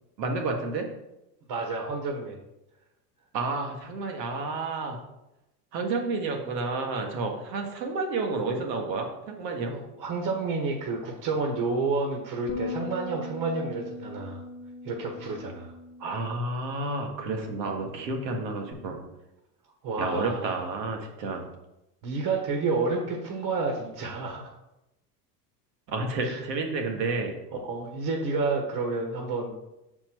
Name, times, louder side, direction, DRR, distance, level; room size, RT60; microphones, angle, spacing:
voice 1, 0.2-0.9 3.3-5.0 5.7-9.7 16.0-19.0 20.0-21.4 25.9-27.4, right 3 dB, 80° right, 3 dB, 1.6 m, -30 dB
voice 2, 1.5-2.4 9.7-14.4 14.8-15.7 19.8-20.6 22.0-24.5 26.2-26.4 27.6-29.5, right 3 dB, 50° right, 1 dB, 1.5 m, -30 dB
Bass guitar, 12.5-18.7, left 2 dB, 30° left, 1.1 m, -41 dB
6.7 x 4.3 x 4.5 m, 0.91 s
hypercardioid pair, 90°, 49 cm